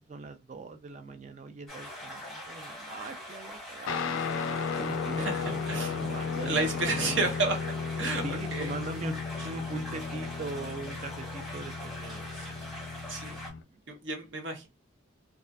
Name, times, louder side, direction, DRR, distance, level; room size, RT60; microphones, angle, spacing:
voice 1, 0.0-4.4 4.8-6.6 6.9-7.3 8.1-9.2 9.4-12.8 13.6-13.8, right 2 dB, 35° right, 0.3 m, -40 dB
sound 1, 1.7-13.5, equal, ahead, 0.8 m, -43 dB
Guitar, 3.9-13.6, left 5 dB, 75° left, 0.3 m, -34 dB
voice 2, 6.5-7.6 8.0-8.2 8.5-8.7 12.3-12.5 13.1-13.4 13.9-14.7, right 3 dB, 65° right, 0.8 m, -31 dB
2.5 x 2.3 x 2.2 m
head